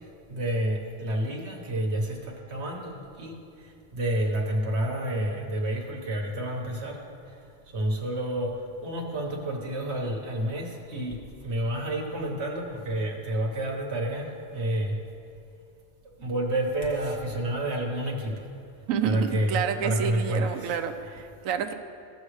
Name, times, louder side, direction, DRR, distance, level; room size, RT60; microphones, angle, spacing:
voice 1, 0.3-3.3 3.6-7.0 7.2-7.4 7.7-8.5 8.8-11.2 11.4-15.0 16.2-18.3 19.0-20.8, right 1 dB, 55° right, 0 dB, 1.5 m, -29 dB
voice 2, 18.9-21.7, right 8 dB, 85° right, 8 dB, 1.0 m, -29 dB
15.5 x 6.3 x 3.2 m, 2.5 s
omnidirectional pair, 1.4 m